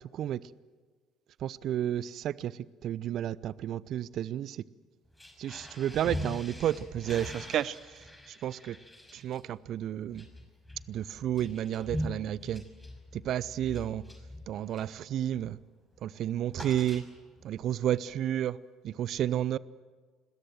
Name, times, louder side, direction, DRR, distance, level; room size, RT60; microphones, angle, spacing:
voice 1, 1.4-4.6 5.4-8.8 9.1-10.3 10.9-12.6 13.1-14.0 14.5-15.6 16.0-17.0 17.4-18.6 18.8-19.6, right 11 dB, 55° right, 0.7 m, -31 dB
sound 1, 5.1-15.0 15.4-15.6 15.9-17.5, left 1 dB, 10° left, 5.8 m, -42 dB
26.0 x 21.0 x 7.8 m
figure-of-eight pair, 55°, 0 cm